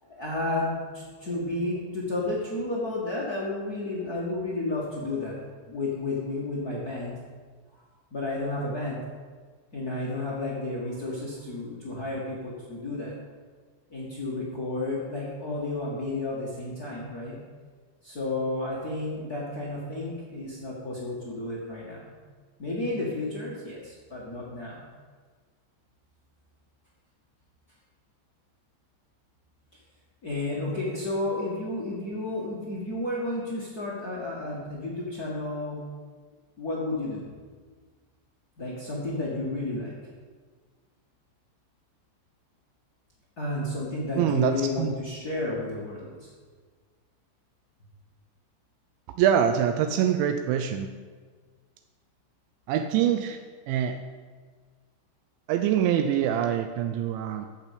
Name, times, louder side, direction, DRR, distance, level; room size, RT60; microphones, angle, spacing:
voice 1, 0.0-5.3 5.7-7.2 8.1-9.0 9.7-13.1 13.9-17.4 18.0-22.1 22.6-24.8 30.2-35.8 36.2-36.3 36.6-37.2 38.6-39.9 43.4-46.3, left 2 dB, 50° left, -5 dB, 1.0 m, -32 dB
voice 2, 44.2-44.9 49.2-50.9 52.7-53.4 53.7-54.0 55.5-57.5, right 9 dB, 80° right, 7 dB, 2.9 m, -24 dB
14.5 x 5.9 x 8.3 m, 1.5 s
omnidirectional pair, 5.3 m